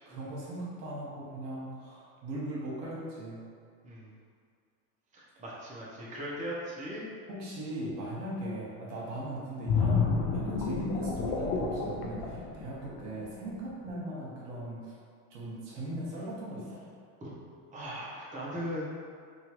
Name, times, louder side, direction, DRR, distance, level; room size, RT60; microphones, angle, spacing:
voice 1, 0.1-3.5 7.3-14.9 15.3-16.8, right 1 dB, 85° right, -5 dB, 1.1 m, -39 dB
voice 2, 5.1-7.0 17.2-17.3 17.7-18.9, equal, 15° right, -6 dB, 0.6 m, -39 dB
sound 1, 9.7-13.3 13.7-13.9, left 4 dB, 55° left, 0.6 m, -30 dB
3.0 x 2.4 x 2.9 m, 2.1 s
supercardioid pair, 105°, 48 cm